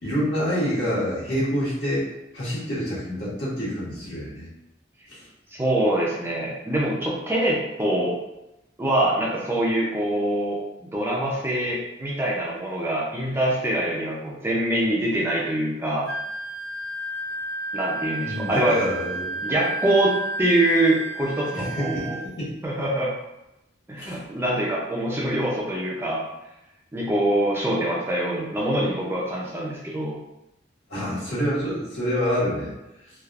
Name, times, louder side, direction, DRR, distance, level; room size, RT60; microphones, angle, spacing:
voice 1, 0.0-2.1 2.3-4.5 5.1-5.3 18.2-19.4 21.6-22.5 24.0-24.2 30.9-32.7, equal, 70° left, -9 dB, 1.4 m, -27 dB
voice 2, 5.5-8.1 8.8-16.1 17.7-18.8 19.4-22.2 22.6-23.1 23.9-26.2 26.9-30.2, right 1 dB, 15° right, -4 dB, 0.5 m, -24 dB
Wind instrument woodwind instrument, 16.1-22.3, right 2 dB, 70° right, 0.5 m, -32 dB
3.3 x 2.4 x 2.4 m, 0.92 s
head